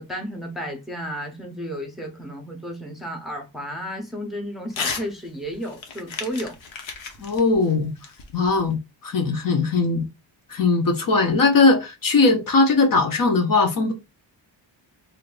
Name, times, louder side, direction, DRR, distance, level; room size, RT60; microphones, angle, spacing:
voice 1, 0.0-6.6, equal, ahead, 0.7 m, -33 dB
Crumpling crinkling / Tearing, 4.7-5.1 5.4-8.7, left 5 dB, 75° left, 1.0 m, -33 dB
voice 2, 7.2-7.9 8.3-10.0 10.5-13.9, left 3 dB, 45° left, 0.7 m, -19 dB
3.2 x 2.6 x 3.8 m
wide cardioid pair, 175°, 47 cm